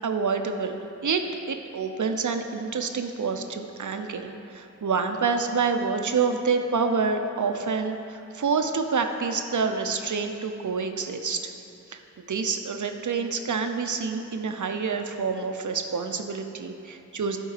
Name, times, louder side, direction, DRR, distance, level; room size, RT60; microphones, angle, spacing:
voice 1, 0.0-11.4 11.9-12.0 12.3-17.4, right 5 dB, 80° right, 6 dB, 0.6 m, -27 dB
12.0 x 4.5 x 4.9 m, 2.9 s
wide cardioid pair, 45°, 29 cm